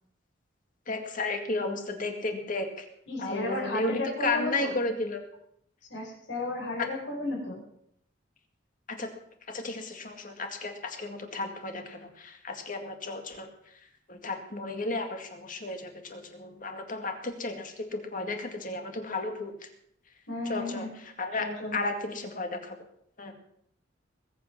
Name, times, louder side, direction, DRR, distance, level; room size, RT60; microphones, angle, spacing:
voice 1, 0.9-2.9 3.2-5.2 6.8-6.9 8.9-9.1 9.5-13.5 14.1-19.5 20.5-20.9 21.2-22.8 23.2-23.3, left 2 dB, 45° left, 5 dB, 2.2 m, -33 dB
voice 2, 3.1-4.8 5.9-7.6 20.3-20.9 21.4-21.8, left 2 dB, 65° left, -2 dB, 5.3 m, -33 dB
20.5 x 8.6 x 6.1 m, 0.71 s
head